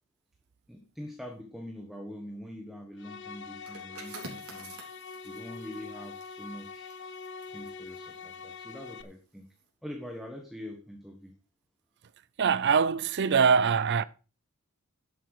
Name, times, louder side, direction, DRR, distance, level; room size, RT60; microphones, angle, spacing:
voice 1, 0.7-4.9 5.2-7.0 7.5-9.5 9.8-11.3, equal, ahead, 1.3 m, -44 dB
sound 1, 3.0-9.0, left 5 dB, 55° left, 0.9 m, -44 dB
sound 2, 3.5-9.0 9.4-9.6, right 3 dB, 85° right, 3.8 m, -49 dB
voice 2, 12.4-14.0, right 6 dB, 50° right, 0.5 m, -23 dB
11.5 x 7.7 x 4.8 m
head